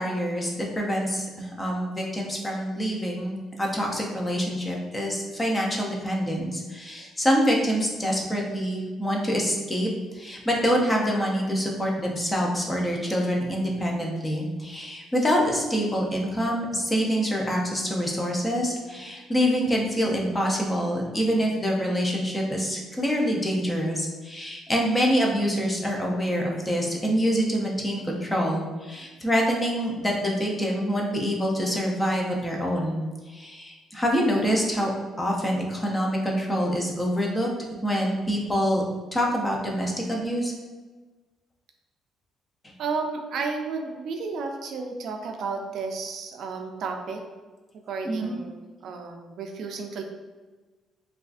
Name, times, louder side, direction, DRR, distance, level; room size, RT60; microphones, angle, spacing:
voice 1, 0.0-34.9 35.2-37.5 37.8-38.8 39.1-40.5 42.6-42.7 48.0-48.4, equal, 10° left, -1 dB, 0.5 m, -26 dB
voice 2, 42.8-47.2 47.9-48.6 48.8-50.0, right 4 dB, 55° right, 3 dB, 0.3 m, -32 dB
3.6 x 2.4 x 2.4 m, 1.3 s
cardioid pair, 160°, 0 cm